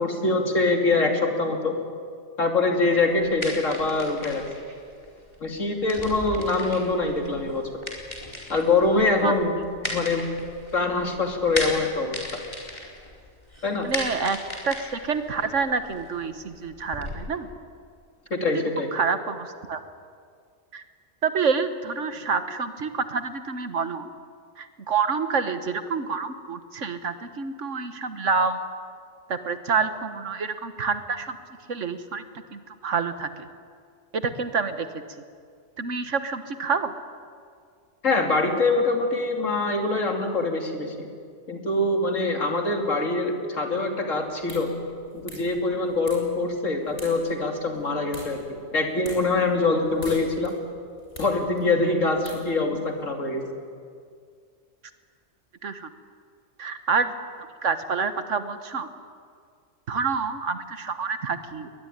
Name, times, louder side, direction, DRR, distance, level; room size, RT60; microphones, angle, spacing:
voice 1, 0.0-1.7 2.4-4.4 5.4-7.6 8.5-9.5 9.8-10.3 10.7-12.2 13.6-13.9 18.3-18.9 38.0-41.1 41.5-44.7 45.2-48.4 48.7-50.5 51.2-53.4, left 3 dB, 80° left, 3 dB, 3.2 m, -24 dB
sound 1, 3.1-17.1, left 1 dB, 20° left, 4.5 m, -37 dB
voice 2, 13.8-14.4 14.6-17.5 18.9-19.8 20.7-20.8 21.2-24.1 24.6-28.6 29.3-31.4 31.7-32.2 32.5-33.5 34.1-34.9 35.8-36.9 51.8-52.0 55.6-55.9 56.6-57.1 57.6-58.9 59.9-61.7, right 5 dB, 70° right, 10 dB, 1.7 m, -27 dB
sound 2, 44.2-53.0, left 1 dB, 65° left, 7.9 m, -47 dB
21.0 x 21.0 x 10.0 m, 2.2 s
omnidirectional pair, 1.3 m